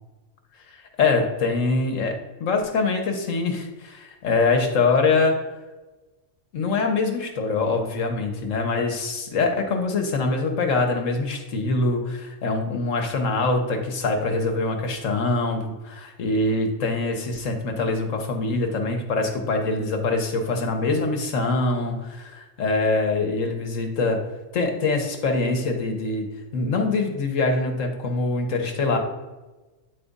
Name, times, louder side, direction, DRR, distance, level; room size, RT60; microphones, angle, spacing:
voice 1, 0.7-5.4 6.5-24.2 24.5-29.0, left 3 dB, 80° left, 3 dB, 1.4 m, -24 dB
9.4 x 3.7 x 4.0 m, 1.2 s
omnidirectional pair, 1.3 m